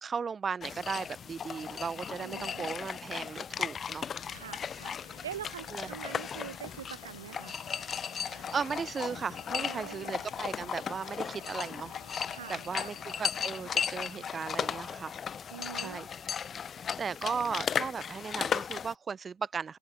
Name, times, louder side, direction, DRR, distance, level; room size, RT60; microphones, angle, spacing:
voice 1, 0.0-4.1 5.7-6.0 8.2-11.9 12.5-15.1 15.8-16.1 17.0-19.8, right 6 dB, 15° right, 0.7 m, -36 dB
sound 1, 0.6-18.9, left 7 dB, 20° left, 0.9 m, -36 dB
voice 2, 2.2-2.7 4.3-7.6 9.5-10.2 12.3-12.9 15.5-16.0 17.4-17.5, right 10 dB, 60° right, 0.6 m, -44 dB
sound 2, 4.2-14.7, left 6 dB, 75° left, 2.2 m, -56 dB
open air
figure-of-eight pair, 90°, 0 cm